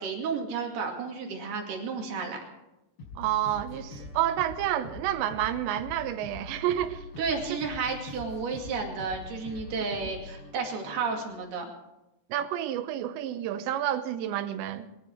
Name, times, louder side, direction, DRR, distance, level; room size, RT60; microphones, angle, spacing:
voice 1, 0.0-2.4 7.2-11.7, right 5 dB, 60° right, 4.1 m, -32 dB
sound 1, 3.0-11.4, left 3 dB, 55° left, 7.3 m, -44 dB
voice 2, 3.2-7.0 12.3-14.9, right 12 dB, 80° right, 3.0 m, -29 dB
23.5 x 11.0 x 4.7 m
omnidirectional pair, 5.3 m